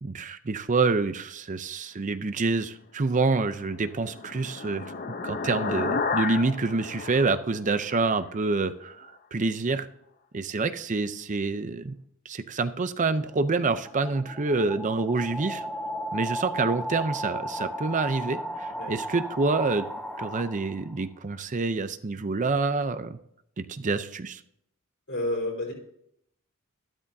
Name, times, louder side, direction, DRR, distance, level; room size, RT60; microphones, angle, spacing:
voice 1, 0.0-4.9 5.2-9.9 10.3-11.9 12.3-15.7 16.1-19.9 20.2-23.2 23.6-24.4, right 3 dB, 35° right, 11 dB, 0.6 m, -27 dB
sound 1, 3.5-8.2, left 4 dB, 45° left, 0.7 m, -32 dB
sound 2, 13.3-21.0, equal, 5° left, 1.1 m, -35 dB
voice 2, 25.1-25.7, left 1 dB, 65° left, 0 dB, 4.6 m, -30 dB
13.0 x 12.5 x 2.7 m, 0.73 s
head